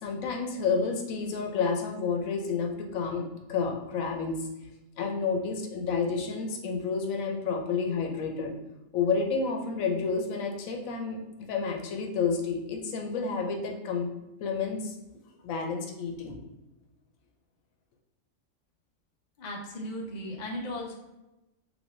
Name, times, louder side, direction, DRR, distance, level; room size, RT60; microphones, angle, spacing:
voice 1, 0.0-4.5 5.0-8.5 8.9-11.2 11.5-14.1 14.4-15.0 15.4-16.4, left 5 dB, 85° left, 2 dB, 1.1 m, -30 dB
voice 2, 19.4-20.9, left 1 dB, 45° left, 0 dB, 0.6 m, -36 dB
3.4 x 3.3 x 2.6 m, 0.98 s
omnidirectional pair, 1.4 m